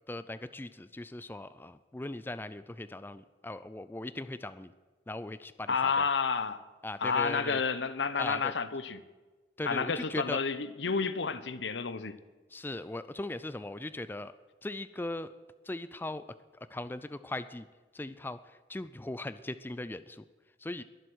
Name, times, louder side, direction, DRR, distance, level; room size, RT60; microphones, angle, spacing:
voice 1, 0.1-4.7 5.1-6.0 6.8-7.6 8.2-8.5 9.6-10.4 12.5-14.3 14.6-15.3 15.7-16.3 16.7-17.7 17.9-18.4 18.7-20.2 20.6-20.8, left 2 dB, 10° left, 0.4 m, -39 dB
voice 2, 5.7-6.6 7.0-9.0 9.6-12.1, left 5 dB, 85° left, 0.8 m, -30 dB
21.5 x 7.8 x 6.3 m
head